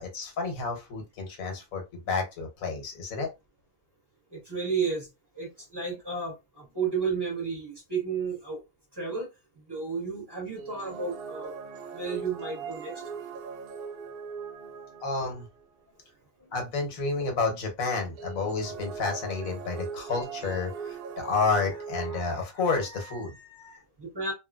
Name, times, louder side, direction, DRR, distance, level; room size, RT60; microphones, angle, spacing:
voice 1, 0.0-3.3 15.0-15.5 16.5-23.8, left 4 dB, 90° left, 1.4 m, -30 dB
voice 2, 4.3-5.1 5.3-8.6 8.9-9.3 9.7-11.5 11.9-12.9 24.0-24.3, right 5 dB, 20° right, 1.4 m, -32 dB
sound 1, 10.6-15.6 18.2-22.2, right 5 dB, 65° right, 0.6 m, -40 dB
3.1 x 2.4 x 2.3 m
omnidirectional pair, 1.4 m